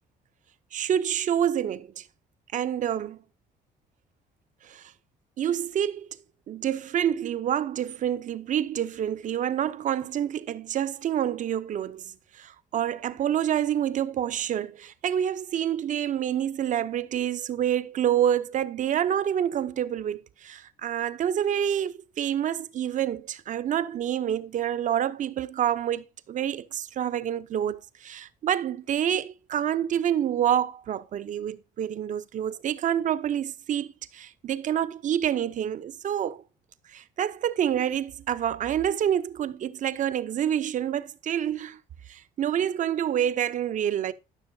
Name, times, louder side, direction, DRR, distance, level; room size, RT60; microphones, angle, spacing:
voice 1, 0.7-2.0 2.5-3.2 4.6-4.9 5.4-6.1 6.5-36.4 36.9-41.8 42.1-44.1, right 10 dB, 50° right, 0.6 m, -27 dB
13.5 x 6.1 x 2.7 m
cardioid pair, 110°, 17 cm